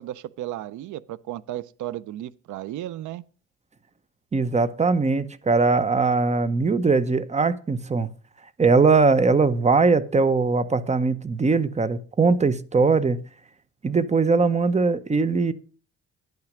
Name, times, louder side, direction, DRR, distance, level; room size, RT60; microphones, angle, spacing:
voice 1, 0.0-3.2, right 13 dB, 75° right, 0.6 m, -34 dB
voice 2, 4.3-8.1 8.6-13.2 13.8-15.5, right 4 dB, 25° right, 0.7 m, -20 dB
10.5 x 5.8 x 6.4 m
cardioid pair, 90°, 30 cm